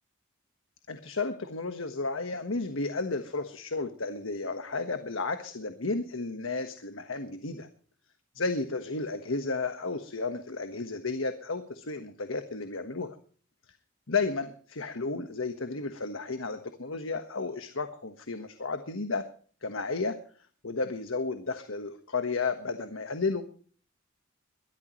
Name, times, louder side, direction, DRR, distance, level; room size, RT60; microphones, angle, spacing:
voice 1, 0.9-7.7 8.3-13.2 14.1-19.3 19.6-20.2 20.6-23.4, left 3 dB, 85° left, 9 dB, 1.4 m, -33 dB
22.0 x 13.0 x 3.1 m, 0.43 s
head